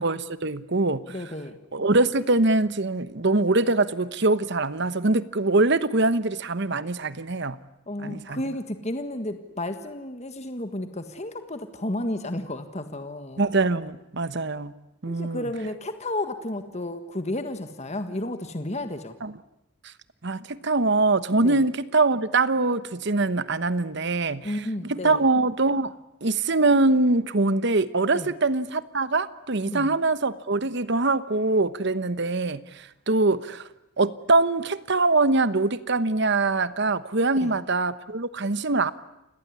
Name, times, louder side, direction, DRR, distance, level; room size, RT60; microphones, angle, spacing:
voice 1, 0.0-1.0 1.7-7.6 8.0-8.4 13.4-14.7 15.0-15.4 19.2-19.3 19.8-19.9 20.2-25.9 26.2-33.7 34.0-38.9, right 3 dB, 55° right, 14 dB, 1.1 m, -23 dB
voice 2, 1.1-1.6 7.9-13.4 15.1-19.2 21.4-21.6 24.4-25.2 28.1-28.3 29.7-29.9 37.4-37.5, left 1 dB, 30° left, 8 dB, 1.6 m, -32 dB
29.5 x 17.5 x 9.9 m, 0.89 s
head